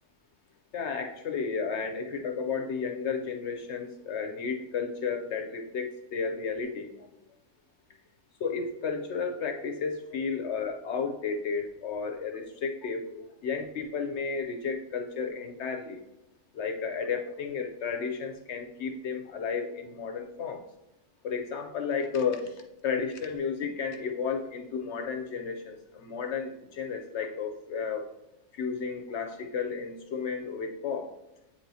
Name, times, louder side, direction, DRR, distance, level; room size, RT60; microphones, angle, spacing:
voice 1, 0.7-7.1 8.4-16.0 16.5-20.6 21.2-28.1 28.5-31.1, left 5 dB, 65° left, 5 dB, 0.7 m, -33 dB
8.4 x 4.3 x 2.7 m, 0.94 s
omnidirectional pair, 1.5 m